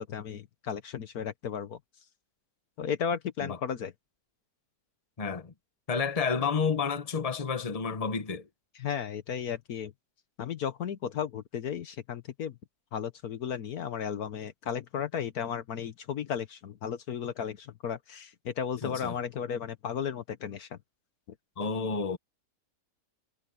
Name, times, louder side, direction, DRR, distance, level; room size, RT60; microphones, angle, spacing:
voice 1, 0.0-1.8 2.8-3.9 8.8-9.9 10.4-12.5 12.9-20.8, left 7 dB, 65° left, 1.4 m, -34 dB
voice 2, 5.2-5.5 5.9-8.5 18.8-19.2 21.6-22.2, left 5 dB, 25° left, 1.2 m, -30 dB
omnidirectional pair, 1.8 m